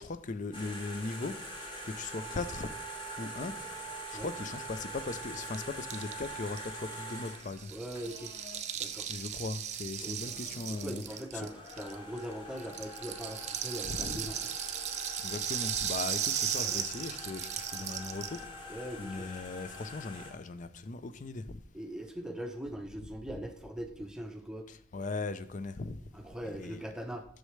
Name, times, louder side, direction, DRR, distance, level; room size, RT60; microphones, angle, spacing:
voice 1, 0.0-1.4 1.8-2.7 3.2-3.6 4.1-7.7 9.1-11.0 11.3-11.5 13.9-14.2 15.2-18.5 19.0-21.6 24.7-26.0 26.5-26.8, left 3 dB, 40° left, 0.5 m, -38 dB
sound 1, 0.5-8.6 9.9-10.0 10.2-20.3, equal, 25° left, 1.6 m, -44 dB
Rattle (instrument), 4.6-4.7 4.8-4.9 5.1-12.2 12.6-18.4, right 9 dB, 35° right, 0.6 m, -36 dB
voice 2, 7.7-8.3 8.8-9.1 10.0-10.2 10.7-14.5 16.6-16.8 18.7-19.3 21.7-24.7 26.1-27.3, right 1 dB, 5° right, 0.7 m, -41 dB
8.0 x 6.5 x 3.2 m
head